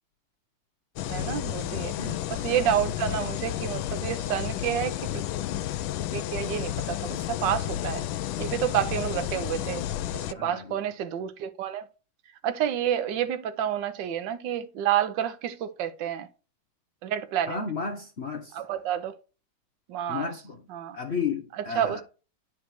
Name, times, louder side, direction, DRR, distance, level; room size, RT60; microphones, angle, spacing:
sound 1, 1.0-10.3, left 12 dB, 75° left, 1.3 m, -31 dB
voice 1, 1.1-5.2 6.1-8.0 8.4-9.8 10.1-11.9 12.4-16.3 17.0-17.6 18.5-19.1 19.9-20.3 20.7-21.0 21.5-22.0, right 10 dB, 65° right, 1.5 m, -29 dB
voice 2, 10.3-10.8 17.5-18.5 20.1-20.6 20.9-22.0, left 5 dB, 55° left, 0.7 m, -33 dB
9.8 x 4.1 x 4.5 m
omnidirectional pair, 2.3 m